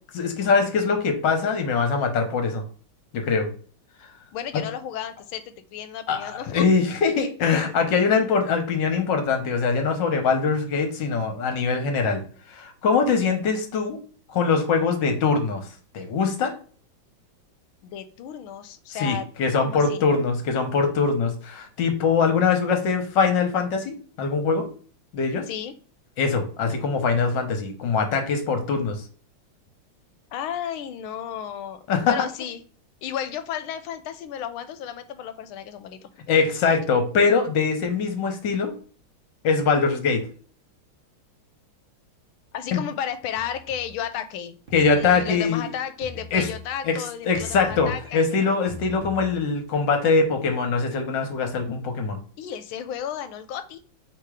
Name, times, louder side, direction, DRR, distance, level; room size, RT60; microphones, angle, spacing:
voice 1, 0.1-2.6 3.1-3.5 4.5-4.6 6.1-12.2 12.5-14.0 14.3-15.7 15.9-16.5 18.9-24.7 25.1-25.4 26.2-29.0 31.9-32.1 36.3-38.7 39.4-40.2 42.7-42.8 44.7-45.6 46.3-46.5 46.8-47.0 47.2-52.2, left 5 dB, 65° left, 5 dB, 1.5 m, -22 dB
voice 2, 4.3-6.6 17.8-19.3 19.6-20.1 25.5-25.7 30.3-32.6 33.0-36.1 42.5-44.6 44.9-48.3 52.4-53.8, left 9 dB, 85° left, 11 dB, 1.4 m, -33 dB
sound 1, 43.3-44.1 44.7-47.0 47.3-49.7, left 2 dB, 35° right, 1.1 m, -42 dB
3.6 x 2.9 x 4.7 m, 0.43 s
omnidirectional pair, 2.2 m